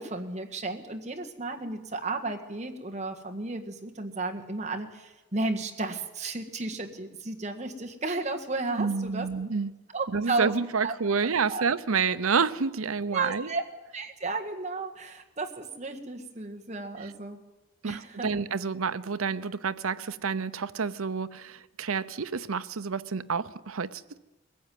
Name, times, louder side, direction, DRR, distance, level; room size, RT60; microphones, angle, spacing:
voice 1, 0.0-9.3 9.9-10.5 10.8-10.9 11.5-11.6 13.1-13.7 13.9-17.4 17.8-18.4, right 3 dB, 35° right, 1.7 m, -33 dB
voice 2, 8.8-9.7 10.1-13.5 17.0-17.1 17.8-24.2, right 5 dB, 85° right, 0.8 m, -29 dB
22.0 x 15.0 x 9.3 m
head